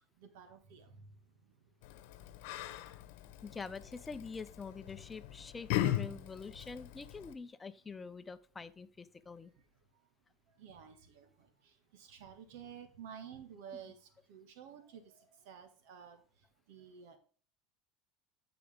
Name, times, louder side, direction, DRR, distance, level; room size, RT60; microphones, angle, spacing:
voice 1, 0.2-1.1 6.1-6.2 10.6-16.2 16.7-17.2, right 8 dB, 75° right, 7 dB, 1.7 m, -52 dB
Yell, 1.8-7.3, left 13 dB, 75° left, 1.0 m, -39 dB
voice 2, 3.4-9.5, left 4 dB, 15° left, 13 dB, 0.7 m, -46 dB
14.0 x 5.0 x 3.5 m, 0.42 s
supercardioid pair, 120°, 0 cm